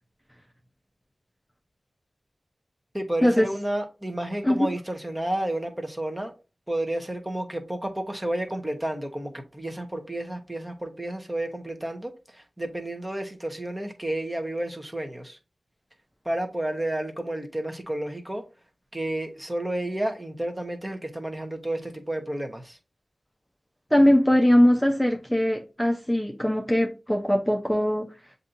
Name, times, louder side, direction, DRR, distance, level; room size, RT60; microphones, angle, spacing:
voice 1, 2.9-6.3 6.7-15.4 16.2-18.4 18.9-22.8, right 1 dB, 20° right, 1.0 m, -31 dB
voice 2, 23.9-28.1, equal, 5° left, 0.7 m, -21 dB
7.3 x 2.7 x 2.6 m
cardioid pair, 50°, 0 cm